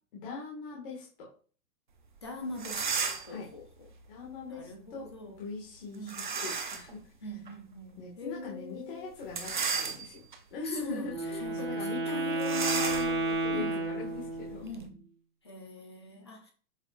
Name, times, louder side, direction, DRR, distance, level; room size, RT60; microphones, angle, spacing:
voice 1, 0.1-1.3 3.3-3.5 4.1-7.0 8.0-10.2 10.5-14.7, left 4 dB, 35° left, 1.8 m, -41 dB
voice 2, 2.2-3.9 4.5-5.4 5.9-6.2 7.2-9.1 10.6-12.9 13.5-13.9 14.6-15.1 15.4-16.5, left 2 dB, 15° left, 0.6 m, -43 dB
sound 1, 2.2-2.3 2.5-3.4 6.1-6.9 7.5-7.6 9.2-10.4 10.9-11.1 11.4-11.5 12.4-14.9, right 5 dB, 30° right, 0.6 m, -34 dB
Wind instrument woodwind instrument, 11.0-14.7, right 2 dB, 15° right, 1.8 m, -32 dB
7.9 x 5.8 x 2.4 m
hypercardioid pair, 180°, 48 cm